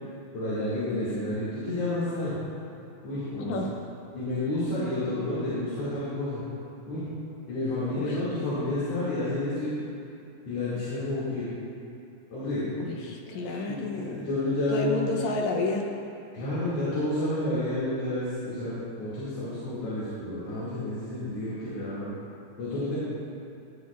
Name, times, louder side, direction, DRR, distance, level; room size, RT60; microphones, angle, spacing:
voice 1, 0.3-2.4 3.0-3.5 4.1-6.4 6.9-7.1 7.5-9.7 10.5-11.5 12.3-13.0 13.2-13.5 14.0-15.1 16.3-22.1 22.6-23.0, left 1 dB, 55° left, -13 dB, 3.1 m, -30 dB
voice 2, 3.4-3.8 8.0-8.2 12.8-14.3 14.7-15.9, left 3 dB, 75° left, 1 dB, 1.9 m, -31 dB
14.5 x 9.6 x 2.4 m, 2.7 s
omnidirectional pair, 3.5 m